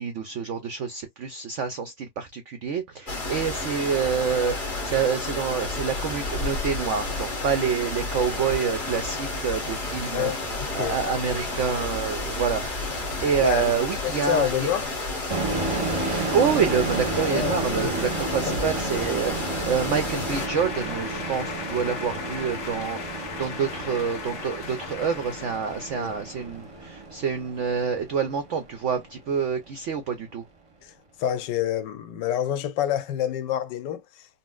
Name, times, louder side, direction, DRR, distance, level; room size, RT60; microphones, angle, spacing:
voice 1, 0.0-14.7 16.3-30.5, right 6 dB, 80° right, 0.6 m, -27 dB
sound 1, 3.1-20.5, left 2 dB, 30° left, 1.1 m, -31 dB
voice 2, 13.4-13.7 14.0-14.9 17.3-17.5 17.8-17.9 18.5-18.6 26.0-26.1 30.8-30.9 31.2-34.3, left 10 dB, 80° left, 1.3 m, -27 dB
sound 2, 15.3-28.7, right 2 dB, 30° right, 0.6 m, -32 dB
sound 3, 20.3-27.1, left 5 dB, 50° left, 1.0 m, -37 dB
4.1 x 2.1 x 2.3 m
omnidirectional pair, 1.9 m